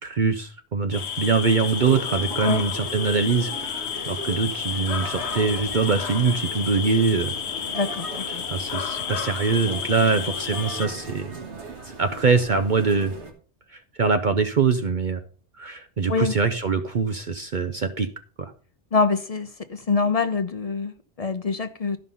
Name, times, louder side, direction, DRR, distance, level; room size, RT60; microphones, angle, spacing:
voice 1, 0.0-7.3 8.3-11.3 11.8-13.1 13.7-15.2 15.6-18.1 18.4-18.5, right 5 dB, 50° right, 0.8 m, -23 dB
sound 1, 0.9-10.9, left 8 dB, 75° left, 1.1 m, -31 dB
sound 2, 1.6-13.3, right 3 dB, 75° right, 2.1 m, -38 dB
voice 2, 7.7-8.4 16.1-16.3 18.9-22.0, left 4 dB, 40° left, 0.7 m, -25 dB
12.5 x 5.4 x 5.6 m
omnidirectional pair, 1.1 m